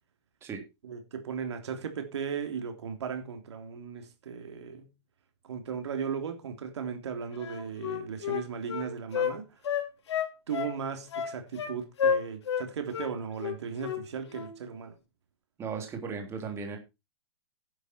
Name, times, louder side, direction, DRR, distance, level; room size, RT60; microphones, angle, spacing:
voice 1, 0.8-4.9 5.4-9.5 10.5-15.0, right 6 dB, 80° right, 3.3 m, -36 dB
Wind instrument woodwind instrument, 7.4-9.3 9.6-10.8 11.1-11.7 12.0-12.7 12.9-13.1 13.4-14.0 14.3-14.5, left 7 dB, 80° left, 3.8 m, -30 dB
voice 2, 15.6-16.8, right 5 dB, 20° right, 3.3 m, -36 dB
11.0 x 9.7 x 4.4 m
hypercardioid pair, 145°, 14 cm